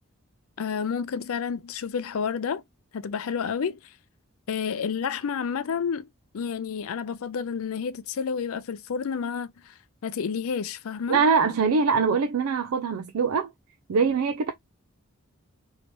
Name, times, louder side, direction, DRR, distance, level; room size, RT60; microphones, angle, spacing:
voice 1, 0.6-2.6 2.9-3.8 4.5-6.1 6.3-9.7 10.0-11.2, left 6 dB, 70° left, 0.4 m, -30 dB
voice 2, 11.1-13.5 13.9-14.5, right 5 dB, 75° right, 0.4 m, -23 dB
3.1 x 2.8 x 3.0 m
head